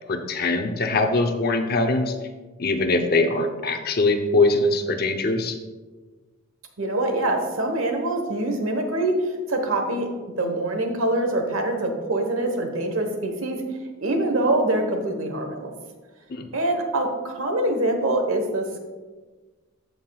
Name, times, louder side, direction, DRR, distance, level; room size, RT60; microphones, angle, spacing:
voice 1, 0.1-2.1 2.6-5.6 16.3-16.5, left 2 dB, 50° left, 5 dB, 0.7 m, -22 dB
voice 2, 6.8-10.1 10.4-13.6 14.0-15.7 16.5-18.8, right 1 dB, 85° right, 4 dB, 1.2 m, -24 dB
14.5 x 5.8 x 2.4 m, 1.3 s
head